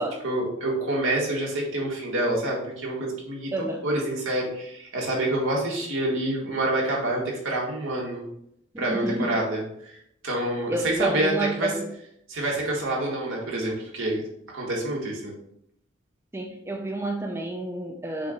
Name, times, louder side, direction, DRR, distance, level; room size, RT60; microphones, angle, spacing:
voice 1, 0.2-3.5 3.8-8.3 8.8-10.0 10.2-11.7 12.3-14.2 14.5-15.3, right 1 dB, 85° right, -3 dB, 2.0 m, -27 dB
voice 2, 3.5-3.8 8.7-9.4 10.7-11.9 16.3-18.3, right 2 dB, 10° right, 3 dB, 0.4 m, -29 dB
6.9 x 2.7 x 5.2 m, 0.74 s
head